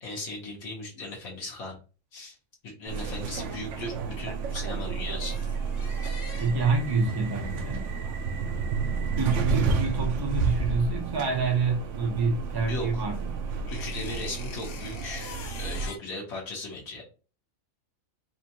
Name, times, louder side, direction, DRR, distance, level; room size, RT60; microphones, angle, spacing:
voice 1, 0.0-1.8 2.1-2.3 2.6-5.4 12.6-13.0 13.7-17.0, left 2 dB, 80° left, 1.6 m, -37 dB
sound 1, 2.9-15.9, right 4 dB, 70° right, 0.8 m, -31 dB
sound 2, 5.1-11.1 11.3-16.0, left 6 dB, 55° left, 0.7 m, -46 dB
voice 2, 6.4-7.9 9.2-13.4, right 4 dB, 20° right, 0.7 m, -27 dB
4.3 x 2.4 x 2.8 m
omnidirectional pair, 1.4 m